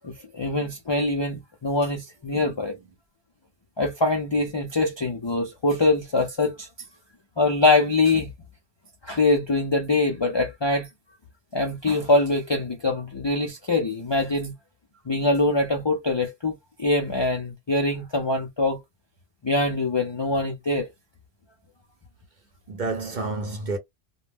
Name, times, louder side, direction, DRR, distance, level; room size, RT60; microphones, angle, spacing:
voice 1, 0.0-2.7 3.8-6.7 7.4-8.3 9.0-10.9 11.5-14.5 15.1-16.5 16.8-18.8 19.4-20.9, left 2 dB, 45° left, 0.3 m, -23 dB
voice 2, 2.3-2.6 22.7-23.8, right 3 dB, 50° right, 0.7 m, -30 dB
2.3 x 2.1 x 3.4 m
omnidirectional pair, 1.3 m